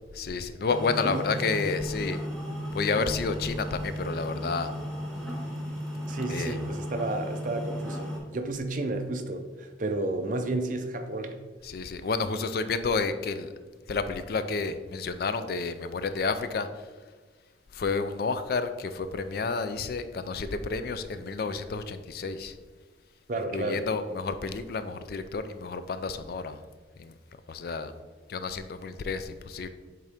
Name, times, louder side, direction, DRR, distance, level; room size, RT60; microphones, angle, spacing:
voice 1, 0.2-2.2 2.7-4.7 6.3-6.6 11.6-13.5 13.9-16.7 17.7-22.5 23.5-26.6 27.0-27.1 27.5-27.9 28.3-29.7, left 4 dB, 55° left, 11 dB, 0.3 m, -30 dB
sound 1, 0.7-8.2, equal, 5° left, 1.3 m, -35 dB
voice 2, 6.1-11.4 23.3-23.9, right 2 dB, 45° right, 6 dB, 0.5 m, -32 dB
8.1 x 3.7 x 3.4 m, 1.4 s
head